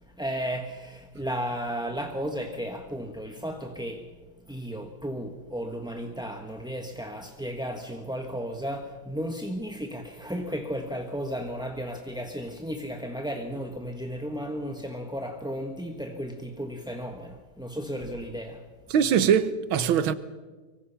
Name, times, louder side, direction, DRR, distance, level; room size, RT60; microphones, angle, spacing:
voice 1, 0.2-4.0 4.5-18.6, equal, 5° right, 1.0 m, -34 dB
voice 2, 18.9-20.1, right 8 dB, 80° right, 1.8 m, -22 dB
24.5 x 24.0 x 5.8 m
omnidirectional pair, 2.2 m